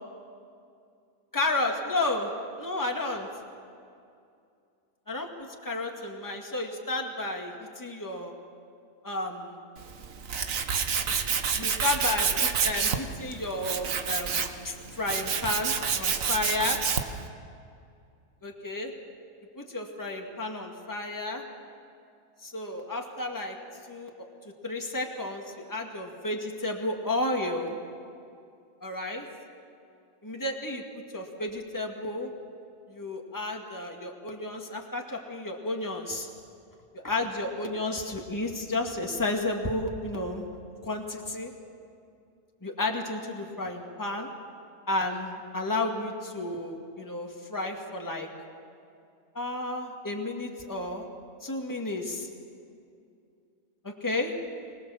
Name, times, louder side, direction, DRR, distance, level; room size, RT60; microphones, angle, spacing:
voice 1, 1.3-2.3 2.6-3.3 5.1-8.3 9.0-9.6 11.6-16.8 18.4-18.9 19.6-21.4 22.4-23.6 23.9-24.3 24.6-27.8 28.8-29.3 30.2-30.8 31.1-32.3 32.9-36.3 36.9-40.5 40.8-41.5 42.6-44.3 44.9-48.3 49.4-51.1 51.4-52.3 53.8-54.3, left 2 dB, 15° left, 1 dB, 2.1 m, -32 dB
Tools, 9.8-17.2, right 7 dB, 65° right, 1.5 m, -29 dB
25.0 x 20.0 x 7.2 m, 2.4 s
omnidirectional pair, 1.5 m